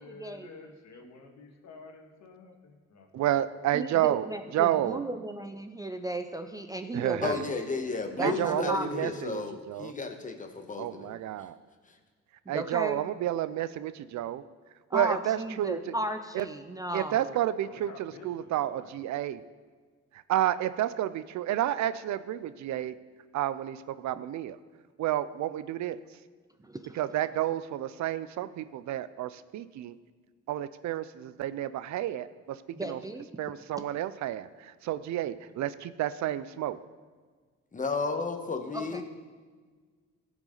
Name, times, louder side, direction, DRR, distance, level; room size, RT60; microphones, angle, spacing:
voice 1, 0.0-3.4 17.6-19.0, left 4 dB, 65° left, 2 dB, 1.7 m, -50 dB
voice 2, 3.1-4.3 4.5-5.0 6.9-7.3 8.2-9.4 9.7-9.9 10.8-11.6 12.5-14.4 14.9-15.8 16.3-16.4 16.9-19.4 20.3-22.9 23.3-24.6 25.0-26.0 26.9-30.0 30.5-32.3 32.9-33.0 33.4-36.8, right 12 dB, 70° right, 14 dB, 0.5 m, -30 dB
voice 3, 3.7-7.4 8.2-9.0 12.5-13.0 14.9-17.4 24.2-24.3 26.6-27.0 32.8-33.3 38.7-39.0, right 1 dB, 10° right, 6 dB, 0.5 m, -35 dB
voice 4, 7.2-11.2 37.7-39.0, left 4 dB, 25° left, 5 dB, 1.2 m, -33 dB
15.5 x 6.0 x 3.9 m, 1.5 s
cardioid pair, 90°, 30 cm